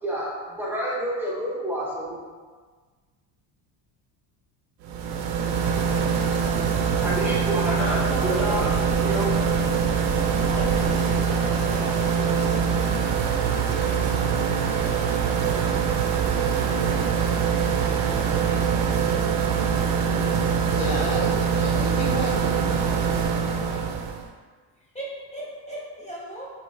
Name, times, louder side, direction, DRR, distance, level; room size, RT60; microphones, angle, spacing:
voice 1, 0.0-2.2 7.0-8.7 9.0-9.3, right 1 dB, 5° right, -7 dB, 0.8 m, -28 dB
sound 1, 4.8-24.2, right 6 dB, 70° right, 0.6 m, -23 dB
voice 2, 7.5-9.9 10.3-12.6 24.9-26.5, equal, 15° left, -7 dB, 0.4 m, -37 dB
sound 2, 10.4-18.8, equal, 35° left, 1.3 m, -41 dB
voice 3, 20.1-23.9, left 2 dB, 80° left, -2 dB, 1.2 m, -34 dB
6.6 x 2.8 x 2.6 m, 1.5 s
cardioid pair, 175°, 44 cm